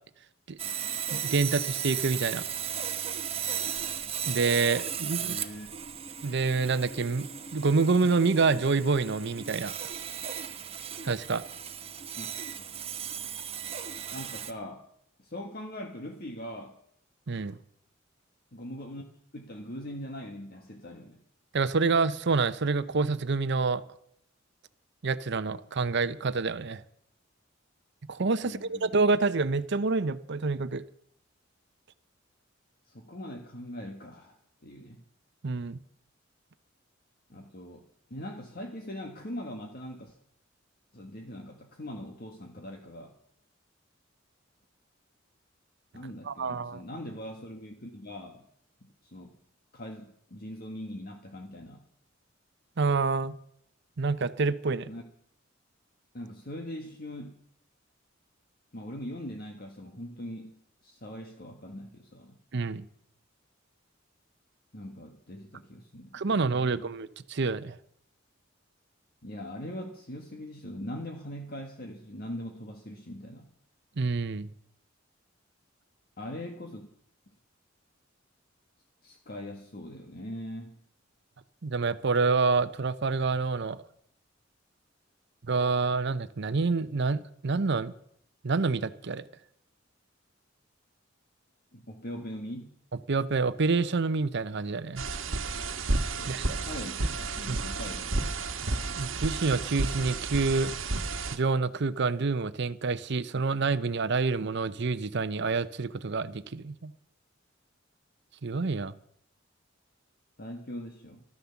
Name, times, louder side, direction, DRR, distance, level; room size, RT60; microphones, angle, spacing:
Sawing, 0.6-14.5, right 8 dB, 30° right, 1.0 m, -36 dB
voice 1, 1.1-2.4 4.3-5.4 6.2-9.7 11.0-11.4 17.3-17.6 21.5-23.8 25.0-26.8 28.1-30.8 35.4-35.8 46.3-46.8 52.8-53.3 54.0-54.9 62.5-62.8 66.1-67.8 74.0-74.5 81.6-83.8 85.5-87.9 88.4-89.3 93.1-95.0 96.3-96.6 97.5-97.6 99.0-100.7 101.3-106.9 108.4-108.9, right 4 dB, 60° right, 0.7 m, -27 dB
voice 2, 5.2-5.7 12.0-12.3 14.1-14.9 15.2-16.8 18.5-19.0 19.3-21.2 28.4-29.0 32.9-34.4 34.6-35.0 37.3-40.2 40.9-43.1 45.9-48.5 48.8-49.3 49.7-51.8 54.9-55.0 56.1-57.4 58.7-62.4 64.7-67.0 69.2-73.5 76.2-76.9 79.0-80.8 91.7-92.7 96.2-98.3 110.4-111.2, left 1 dB, 50° left, 1.6 m, -41 dB
sound 1, 95.0-101.4, right 3 dB, 80° right, 1.3 m, -31 dB
13.0 x 13.0 x 7.1 m
head